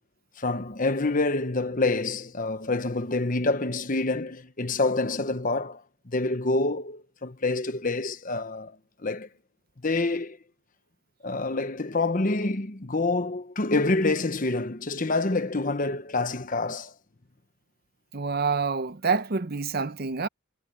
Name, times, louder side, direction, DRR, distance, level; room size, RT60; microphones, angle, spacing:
voice 1, 0.4-8.7 9.0-9.3 9.8-10.4 11.2-16.9, left 2 dB, 40° left, 1.1 m, -27 dB
voice 2, 18.1-20.3, right 4 dB, 45° right, 0.8 m, -27 dB
head